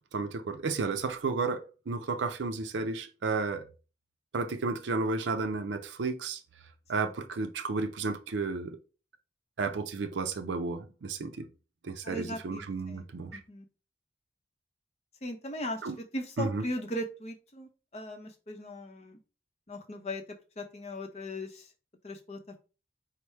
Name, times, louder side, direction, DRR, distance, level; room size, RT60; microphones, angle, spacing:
voice 1, 0.1-3.6 4.3-6.4 6.9-8.8 9.6-11.4 11.8-13.4 15.8-16.0 16.4-16.6, right 4 dB, 80° right, 0.5 m, -32 dB
voice 2, 12.0-13.0 13.3-13.7 15.2-19.2 19.7-20.2 20.6-21.7 22.0-22.6, equal, 35° left, 0.7 m, -38 dB
4.8 x 2.1 x 4.3 m
head